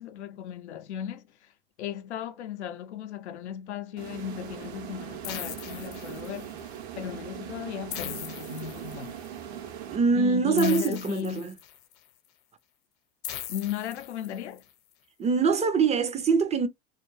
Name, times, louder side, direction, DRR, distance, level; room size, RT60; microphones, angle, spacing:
voice 1, 0.0-1.5 1.8-6.5 7.0-9.2 10.1-11.5 13.5-14.6, left 9 dB, 85° left, 0.5 m, -35 dB
sound 1, 4.0-10.6, right 10 dB, 75° right, 0.8 m, -41 dB
sound 2, 5.2-6.6 7.9-9.3 10.6-11.9 13.2-14.6, left 10 dB, 55° left, 0.8 m, -39 dB
voice 2, 9.9-11.5 15.2-16.7, right 5 dB, 20° right, 0.4 m, -24 dB
2.3 x 2.1 x 3.1 m
hypercardioid pair, 90°, 33 cm